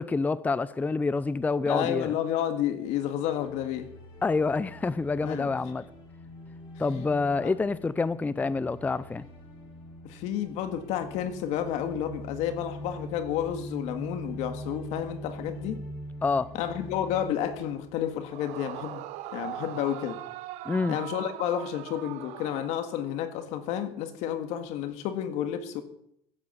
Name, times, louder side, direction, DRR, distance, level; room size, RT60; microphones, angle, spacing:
voice 1, 0.0-2.2 4.2-5.8 6.8-9.2 16.2-16.5 20.7-21.0, left 4 dB, 15° left, 0.5 m, -27 dB
voice 2, 1.7-3.9 5.2-5.5 7.4-7.5 10.0-15.8 16.5-20.2 20.9-25.8, left 10 dB, 75° left, 1.9 m, -31 dB
sound 1, 2.8-18.9, equal, 50° left, 5.0 m, -43 dB
Yell / Screaming, 18.3-23.2, right 13 dB, 75° right, 1.1 m, -40 dB
16.0 x 8.6 x 6.8 m
cardioid pair, 125°, 12 cm